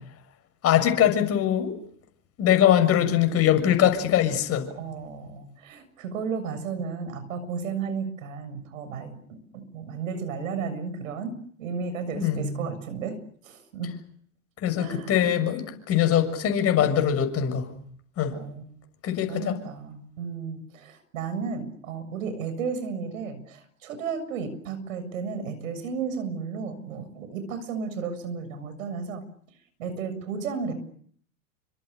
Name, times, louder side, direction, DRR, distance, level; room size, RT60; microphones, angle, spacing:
voice 1, 0.6-1.7 2.4-4.7 12.1-12.6 14.6-17.7 18.2-18.4 19.0-19.6, left 10 dB, 35° left, 7 dB, 6.9 m, -22 dB
voice 2, 4.8-13.2 13.4-13.9 14.7-15.4 18.3-18.6 19.3-29.2 29.8-30.7, right 5 dB, 65° right, 10 dB, 7.2 m, -33 dB
30.0 x 25.5 x 6.8 m, 0.63 s
hypercardioid pair, 100°, 43 cm